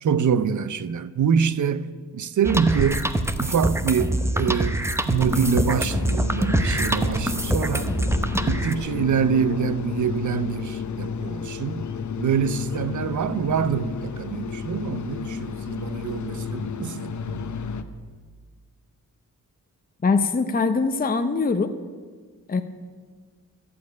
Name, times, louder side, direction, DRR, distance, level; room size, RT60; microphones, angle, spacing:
voice 1, 0.0-3.1 3.4-4.8 5.1-7.9 8.5-11.9 12.2-17.5, right 7 dB, 60° right, 0.7 m, -25 dB
sound 1, 2.4-8.7, right 1 dB, 10° right, 0.7 m, -24 dB
sound 2, 5.1-17.8, left 6 dB, 55° left, 0.8 m, -32 dB
voice 2, 20.0-21.7 22.5-22.6, left 4 dB, 25° left, 0.7 m, -22 dB
14.0 x 6.9 x 9.5 m
wide cardioid pair, 120°, 34 cm